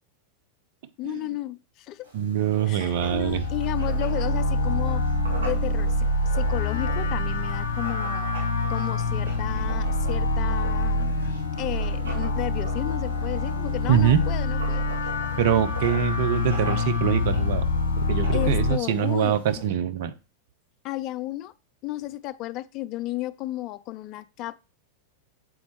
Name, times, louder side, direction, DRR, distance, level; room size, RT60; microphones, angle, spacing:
voice 1, 1.0-2.0 2.7-5.0 5.4-6.1 6.3-8.3 8.7-11.1 11.6-14.8 18.3-19.4 20.8-21.5 21.8-24.6, left 16 dB, 40° left, 0.3 m, -33 dB
Writing, 2.0-19.6, right 1 dB, 65° right, 1.9 m, -43 dB
voice 2, 2.1-3.5 13.9-14.2 15.4-17.7 18.1-20.1, right 10 dB, 50° right, 0.6 m, -24 dB
sound 1, 2.9-18.7, left 2 dB, 70° left, 0.7 m, -26 dB
7.6 x 4.1 x 3.1 m
figure-of-eight pair, 90°, 0 cm